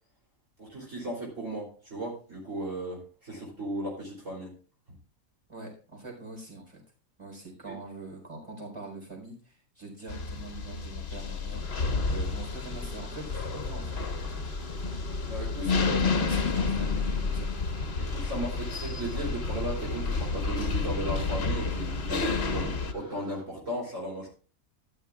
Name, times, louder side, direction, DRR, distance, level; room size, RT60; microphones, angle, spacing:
voice 1, 0.6-4.5 7.7-7.8 15.3-16.0 18.0-24.3, right 1 dB, 60° right, -3 dB, 3.6 m, -36 dB
voice 2, 5.5-6.8 7.2-15.1 15.6-17.5, right 2 dB, 20° right, -1 dB, 4.3 m, -43 dB
sound 1, 10.1-22.9, left 4 dB, 50° left, 1.4 m, -30 dB
sound 2, 11.6-23.4, left 1 dB, 5° right, 2.8 m, -48 dB
13.5 x 11.5 x 2.4 m, 0.38 s
omnidirectional pair, 1.5 m